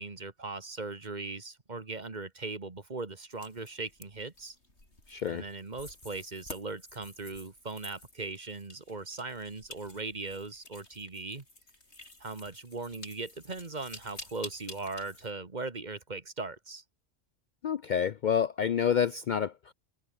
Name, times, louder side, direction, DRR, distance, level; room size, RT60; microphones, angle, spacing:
voice 1, 0.0-4.6 5.3-11.4 12.2-16.8, right 3 dB, 40° right, 1.9 m, -39 dB
sound 1, 3.3-15.3, left 1 dB, 80° left, 7.0 m, -50 dB
voice 2, 5.1-5.4 17.6-19.7, left 8 dB, 55° left, 0.6 m, -28 dB
omnidirectional pair, 1.1 m